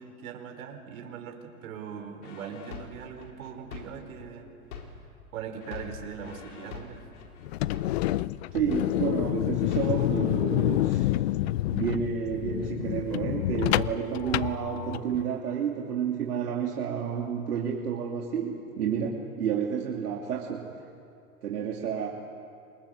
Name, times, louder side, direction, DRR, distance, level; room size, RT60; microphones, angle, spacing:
voice 1, 0.0-4.5 5.3-7.0, right 7 dB, 65° right, 5 dB, 4.9 m, -40 dB
sound 1, 2.2-5.2 5.6-9.2 9.6-10.2, left 6 dB, 75° left, 4.7 m, -43 dB
sound 2, 7.4-15.2, left 15 dB, 45° left, 0.5 m, -28 dB
voice 2, 8.5-11.1 11.7-20.8 21.4-22.1, right 7 dB, 85° right, -1 dB, 3.1 m, -30 dB
29.5 x 26.0 x 6.7 m, 2.5 s
hypercardioid pair, 140°, 45 cm